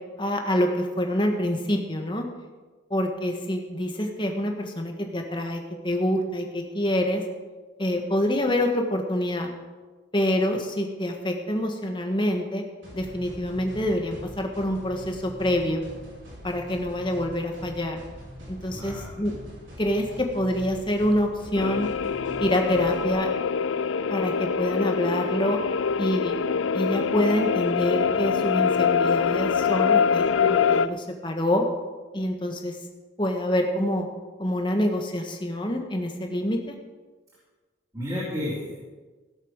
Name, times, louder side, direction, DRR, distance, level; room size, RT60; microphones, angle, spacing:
voice 1, 0.2-2.3 2.9-7.2 7.8-9.5 10.1-12.6 12.9-15.8 16.4-18.0 18.5-19.4 19.8-21.9 22.4-23.3 24.1-25.6 26.0-26.4 26.7-31.7 32.1-32.8 33.2-34.0 34.4-36.7, left 1 dB, 25° left, 3 dB, 1.6 m, -26 dB
sound 1, 12.8-23.1, equal, 80° right, 4.9 m, -43 dB
voice 2, 18.7-19.2 37.9-38.8, left 1 dB, 20° right, -10 dB, 4.3 m, -32 dB
sound 2, 21.6-30.9, left 6 dB, 90° left, 0.5 m, -24 dB
16.5 x 8.2 x 6.6 m, 1.3 s
head